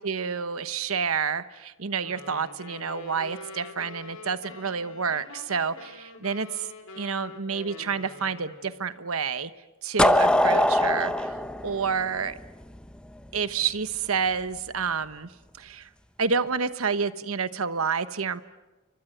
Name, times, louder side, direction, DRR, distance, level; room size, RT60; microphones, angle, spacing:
voice 1, 0.0-6.7 7.0-9.5 9.8-12.4 13.3-15.3 15.6-15.9 16.2-18.4, right 5 dB, 80° right, 12 dB, 1.1 m, -29 dB
sound 1, 2.0-8.8, left 3 dB, 85° left, 4.5 m, -45 dB
sound 2, 10.0-12.8, left 1 dB, 5° left, 0.9 m, -22 dB
29.5 x 24.5 x 7.9 m, 1.1 s
head